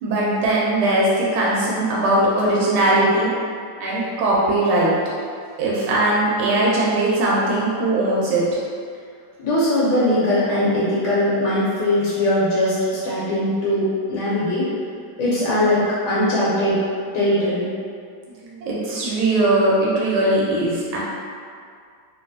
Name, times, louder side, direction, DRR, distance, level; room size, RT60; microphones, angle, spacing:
voice 1, 0.0-3.3 3.8-4.9 5.6-8.4 18.4-21.0, right 1 dB, 85° right, -5 dB, 1.5 m, -20 dB
voice 2, 9.4-14.7 15.2-16.8 17.1-17.7, left 1 dB, 70° left, -8 dB, 1.4 m, -20 dB
3.1 x 2.9 x 2.6 m, 2.2 s
omnidirectional pair, 2.3 m